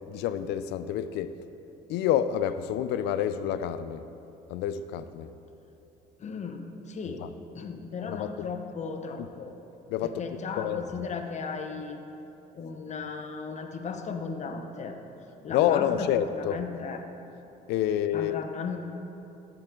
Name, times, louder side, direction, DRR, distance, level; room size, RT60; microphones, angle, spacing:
voice 1, 0.1-1.4 1.9-4.0 4.5-5.3 7.1-7.3 8.1-8.3 9.9-10.2 10.6-10.8 15.5-16.6 17.7-18.4, left 10 dB, 85° left, 12 dB, 0.5 m, -28 dB
voice 2, 6.2-7.3 7.5-9.5 10.0-12.0 12.5-15.0 15.4-17.0 18.1-18.8, left 5 dB, 45° left, 5 dB, 0.9 m, -36 dB
13.0 x 7.8 x 3.8 m, 3.0 s
cardioid pair, 110°, 17 cm